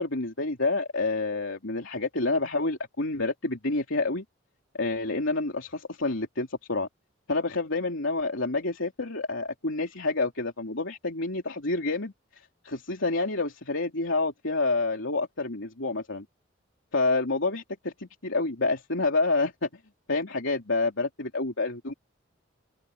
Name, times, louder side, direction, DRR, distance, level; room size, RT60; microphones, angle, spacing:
voice 1, 0.0-4.2 4.8-6.9 7.3-16.2 16.9-19.7 20.1-21.9, left 3 dB, 80° left, 3.0 m, -28 dB
head